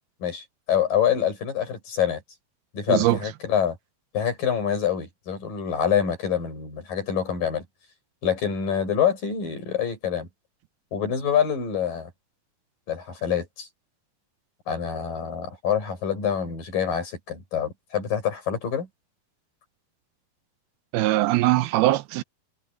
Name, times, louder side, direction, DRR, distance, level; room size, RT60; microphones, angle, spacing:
voice 1, 0.2-2.2 2.7-3.8 4.1-7.6 8.2-10.3 10.9-12.1 12.9-13.7 14.7-18.9, left 8 dB, 60° left, 8.3 m, -26 dB
voice 2, 2.9-3.2 20.9-22.2, right 17 dB, 85° right, 2.7 m, -21 dB
omnidirectional pair, 4.4 m